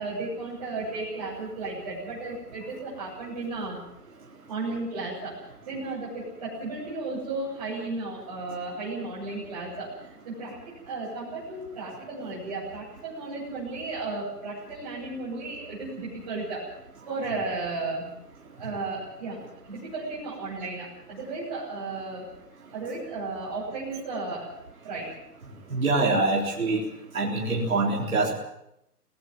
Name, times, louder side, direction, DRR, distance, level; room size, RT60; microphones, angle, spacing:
voice 1, 0.0-3.8 4.5-5.3 5.6-9.9 10.2-10.6 10.8-16.7 17.1-18.1 18.6-22.3 22.7-24.5 24.8-25.1, right 3 dB, 25° right, -10 dB, 7.9 m, -34 dB
voice 2, 25.7-26.8 27.1-28.3, right 3 dB, 60° right, -2 dB, 4.1 m, -24 dB
19.5 x 18.5 x 9.2 m, 0.81 s
hypercardioid pair, 180°, 48 cm